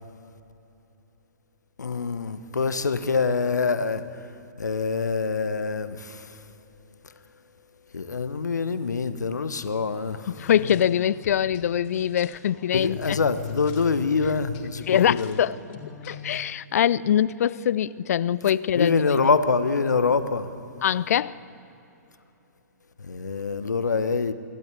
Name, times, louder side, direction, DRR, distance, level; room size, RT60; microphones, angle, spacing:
voice 1, 1.8-4.3 4.6-6.4 7.0-7.1 7.9-10.3 12.7-15.4 18.7-20.5 23.0-24.3, left 4 dB, 80° left, 1.1 m, -25 dB
voice 2, 10.3-13.2 14.9-15.5 16.1-19.0 20.8-21.4, left 10 dB, 60° left, 0.5 m, -23 dB
sound 1, 10.3-16.4, left 8 dB, 40° left, 2.5 m, -41 dB
26.0 x 12.0 x 8.2 m
figure-of-eight pair, 120°, 9 cm